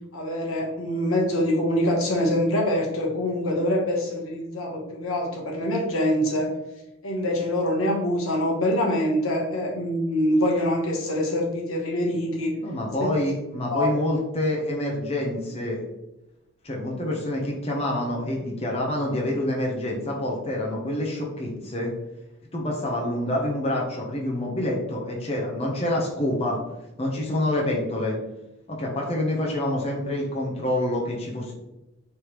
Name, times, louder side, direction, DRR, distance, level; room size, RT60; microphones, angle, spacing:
voice 1, 0.1-6.5 7.0-12.5 13.0-13.1 13.7-14.0, left 1 dB, 75° left, -1 dB, 1.1 m, -24 dB
voice 2, 12.6-15.8 16.6-21.9 22.5-26.6 27.0-28.2 28.7-31.5, left 1 dB, 30° left, -2 dB, 0.8 m, -27 dB
4.8 x 3.4 x 3.0 m, 0.93 s
head